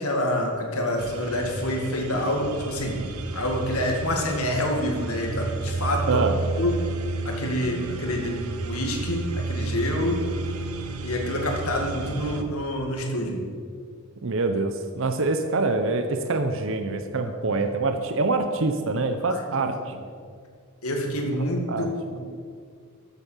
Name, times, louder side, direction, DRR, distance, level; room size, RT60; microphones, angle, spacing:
voice 1, 0.0-3.1 3.3-6.2 6.6-6.7 7.2-10.2 11.0-13.4 17.2-17.3 19.3-20.0 20.8-22.2, left 1 dB, 80° left, 1 dB, 2.1 m, -27 dB
sound 1, 1.0-12.4, right 3 dB, 85° right, 1.1 m, -32 dB
voice 2, 14.2-19.9 21.7-21.9, right 3 dB, 60° right, 7 dB, 0.8 m, -25 dB
14.0 x 8.1 x 5.7 m, 2.1 s
head